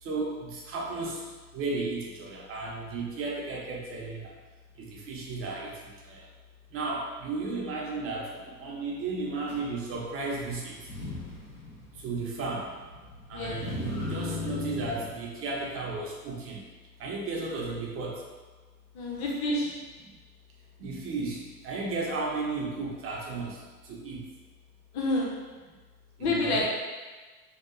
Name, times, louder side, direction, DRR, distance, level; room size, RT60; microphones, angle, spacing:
voice 1, 0.0-1.3 1.5-4.3 4.8-6.3 6.7-10.8 11.9-12.7 13.3-16.7 17.0-18.2 20.1-20.2 20.8-24.3 26.2-26.6, right 3 dB, 30° right, -2 dB, 0.5 m, -34 dB
Motor vehicle (road), 9.5-9.6 10.7-15.1, left 3 dB, 85° left, 0.9 m, -37 dB
voice 2, 13.3-13.6 18.9-19.8 24.9-25.3 26.2-26.6, left 2 dB, 40° left, -2 dB, 0.7 m, -28 dB
2.8 x 2.1 x 2.3 m, 1.3 s
hypercardioid pair, 90°, 45 cm